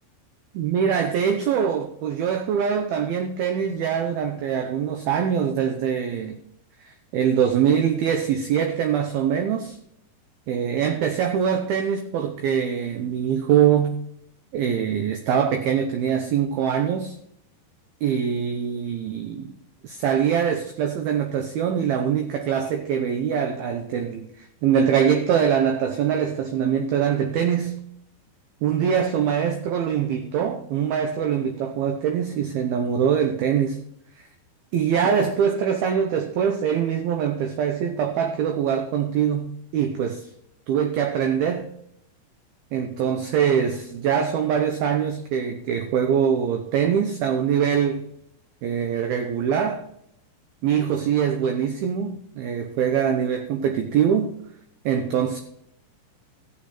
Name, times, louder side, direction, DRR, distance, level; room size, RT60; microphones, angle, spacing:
voice 1, 0.5-6.4 6.8-9.8 10.5-14.0 14.5-17.2 18.0-19.5 19.8-27.8 28.6-33.8 34.7-40.3 40.7-41.7 42.7-48.1 48.6-49.9 50.6-54.3 54.9-55.4, right 8 dB, 80° right, 2.2 m, -23 dB
14.5 x 8.5 x 4.3 m
omnidirectional pair, 5.4 m